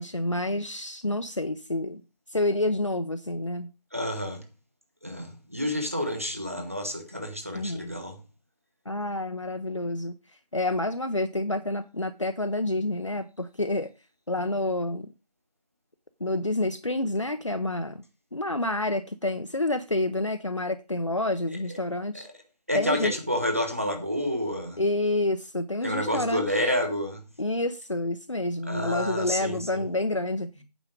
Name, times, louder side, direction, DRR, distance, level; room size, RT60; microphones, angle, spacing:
voice 1, 0.0-2.0 2.3-3.7 7.5-7.9 8.9-10.1 10.5-13.9 14.3-15.1 16.2-18.0 18.3-22.3 22.7-23.2 24.8-26.4 27.4-30.5, left 2 dB, 50° left, 0.7 m, -28 dB
voice 2, 3.9-4.4 5.0-8.2 22.1-22.2 22.7-24.8 25.8-27.2 28.6-29.8, left 1 dB, 20° right, 1.1 m, -29 dB
9.2 x 7.3 x 5.1 m
figure-of-eight pair, 175°, 21 cm